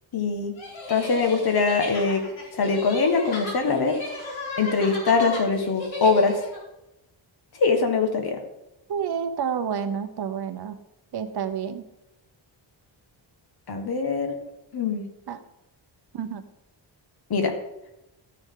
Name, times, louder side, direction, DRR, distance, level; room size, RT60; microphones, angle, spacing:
voice 1, 0.1-0.5 0.9-2.2 2.5-4.0 4.6-6.4 7.6-8.4 13.7-14.4 14.7-15.1 17.3-17.5, left 4 dB, 50° left, 5 dB, 1.6 m, -22 dB
sound 1, 0.6-6.6, left 2 dB, 80° left, 4.7 m, -35 dB
voice 2, 8.9-10.8 11.1-11.8 15.3-15.4 16.2-16.4, right 7 dB, 55° right, 9 dB, 0.9 m, -29 dB
13.5 x 9.6 x 3.8 m, 0.91 s
wide cardioid pair, 180°, 46 cm